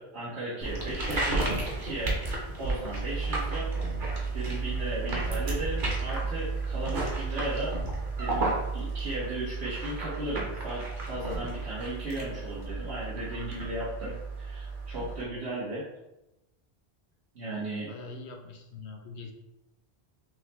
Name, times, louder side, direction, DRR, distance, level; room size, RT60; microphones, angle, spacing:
voice 1, 0.0-1.5 1.8-2.1 2.6-3.7 4.3-7.7 8.2-8.4 8.7-15.8 17.3-17.9, right 1 dB, 80° right, -9 dB, 1.3 m, -36 dB
sound 1, 0.6-15.2, right 3 dB, 50° right, 1.1 m, -32 dB
voice 2, 17.9-19.3, left 3 dB, 80° left, 3 dB, 0.9 m, -43 dB
6.1 x 2.2 x 3.0 m, 0.95 s
omnidirectional pair, 1.1 m